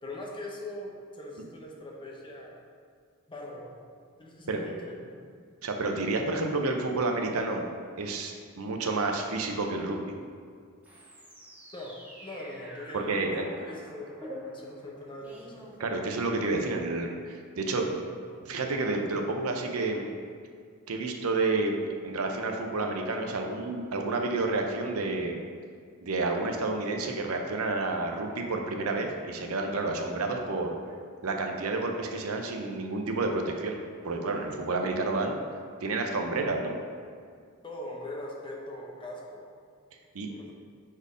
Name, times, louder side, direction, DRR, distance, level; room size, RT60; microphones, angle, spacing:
voice 1, 0.0-2.6 3.3-3.8 4.2-5.2 11.7-11.9 12.2-15.6 37.6-39.5 40.2-40.5, left 1 dB, 25° left, -2 dB, 0.8 m, -41 dB
voice 2, 5.6-7.7 8.0-10.1 12.9-13.4 15.8-18.0 18.4-20.1 20.9-21.8 22.0-25.4 26.0-30.7 31.2-33.8 34.0-35.4 35.8-36.8 40.1-40.3, right 3 dB, 85° right, 3 dB, 0.7 m, -30 dB
sound 1, 10.8-16.5, equal, 5° right, 0.8 m, -47 dB
5.1 x 4.5 x 4.9 m, 2.1 s
head